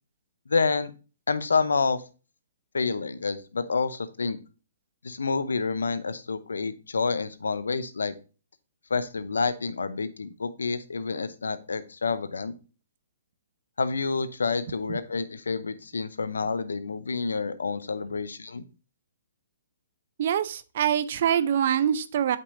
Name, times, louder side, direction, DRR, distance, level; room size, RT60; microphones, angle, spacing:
voice 1, 0.5-0.9 1.3-2.0 2.7-4.4 5.0-8.1 8.9-12.5 13.8-18.6, left 4 dB, 85° left, 13 dB, 0.7 m, -28 dB
voice 2, 20.2-22.4, right 9 dB, 55° right, 14 dB, 0.6 m, -24 dB
8.3 x 5.3 x 2.6 m, 0.33 s
hypercardioid pair, 135°, 0 cm